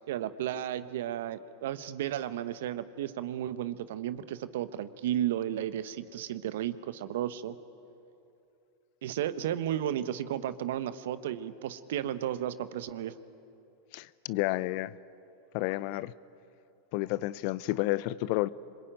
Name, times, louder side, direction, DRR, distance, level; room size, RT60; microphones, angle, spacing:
voice 1, 0.0-7.6 9.0-13.1, right 11 dB, 70° right, 13 dB, 1.1 m, -33 dB
voice 2, 13.9-14.9 15.5-16.1 16.9-18.5, left 18 dB, 55° left, 19 dB, 0.7 m, -30 dB
26.0 x 22.5 x 9.1 m, 2.6 s
hypercardioid pair, 100°, 0 cm